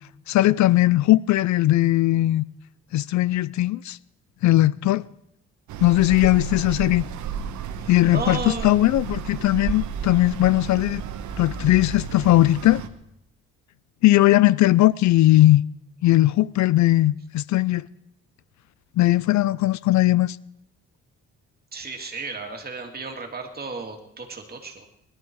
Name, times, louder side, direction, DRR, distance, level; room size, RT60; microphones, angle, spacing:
voice 1, 0.3-2.4 2.9-4.0 4.4-5.1 5.8-7.0 7.9-11.0 11.4-12.8 14.0-15.6 16.0-17.9 19.0-20.4, left 16 dB, 70° left, 0.5 m, -19 dB
sound 1, 5.7-12.9, right 6 dB, 75° right, 1.3 m, -32 dB
voice 2, 7.7-8.8 21.7-24.9, right 4 dB, 30° right, 2.6 m, -34 dB
21.0 x 12.0 x 4.7 m
cardioid pair, 90°, 30 cm